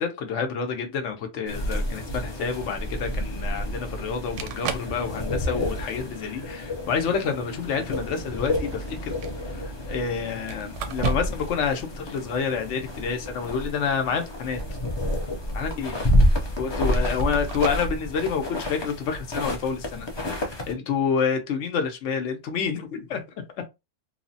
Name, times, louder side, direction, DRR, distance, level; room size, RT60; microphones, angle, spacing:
voice 1, 0.0-9.1 9.4-14.6 15.5-15.9 16.6-23.2 23.5-23.6, left 6 dB, 80° left, 1.0 m, -28 dB
sound 1, 1.5-20.7, equal, 35° left, 0.4 m, -29 dB
sound 2, 2.8-2.9 4.1-4.2 4.4-5.0 5.4-5.8 6.8-6.9 8.6-9.4 10.5-11.5 11.8-11.9 14.2-14.9 15.3-15.4 16.2-16.3 16.9-17.9 20.5-20.7, right 5 dB, 85° right, 0.9 m, -34 dB
3.1 x 2.1 x 2.6 m
omnidirectional pair, 1.2 m